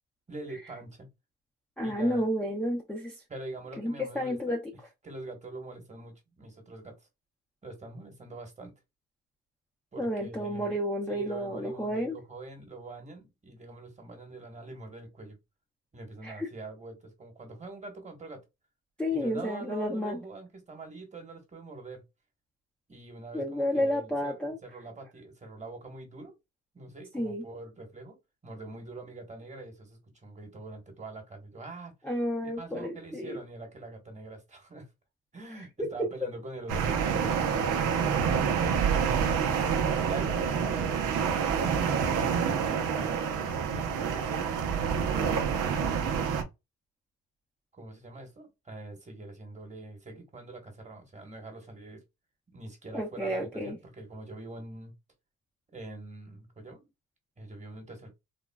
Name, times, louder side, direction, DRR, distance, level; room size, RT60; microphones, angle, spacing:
voice 1, 0.3-1.1 1.8-2.3 3.3-4.4 5.0-7.0 7.6-8.7 9.9-10.8 11.1-15.4 15.9-18.4 19.1-22.0 22.9-26.3 26.7-28.2 28.4-31.9 32.4-34.9 35.3-37.7 38.3-39.4 40.0-44.5 45.1-46.5 47.7-52.0 52.5-54.9 55.7-56.9 57.4-58.1, right 2 dB, 25° right, 1.2 m, -44 dB
voice 2, 1.8-3.2 3.8-4.7 10.0-12.2 16.2-16.5 19.0-20.2 23.3-24.6 27.1-27.4 32.0-33.4 35.8-36.1 52.9-53.8, equal, 5° left, 0.5 m, -31 dB
sound 1, 36.7-46.4, right 7 dB, 90° right, 0.7 m, -27 dB
3.6 x 2.1 x 2.2 m
cardioid pair, 90°, 30 cm